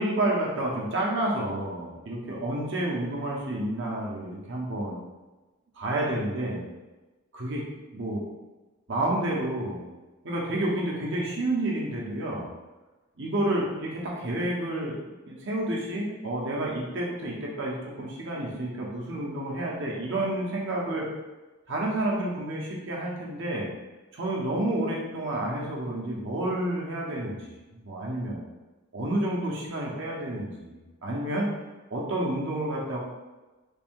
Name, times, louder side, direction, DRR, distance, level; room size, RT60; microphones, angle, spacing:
voice 1, 0.0-5.0 5.8-6.7 7.3-7.6 7.9-8.2 8.9-9.8 10.2-12.5 13.2-15.0 15.3-21.1 21.7-23.7 24.1-27.5 27.8-28.4 28.9-31.5 31.9-33.0, right 1 dB, 65° right, -3 dB, 0.9 m, -30 dB
3.5 x 2.6 x 3.6 m, 1.1 s
head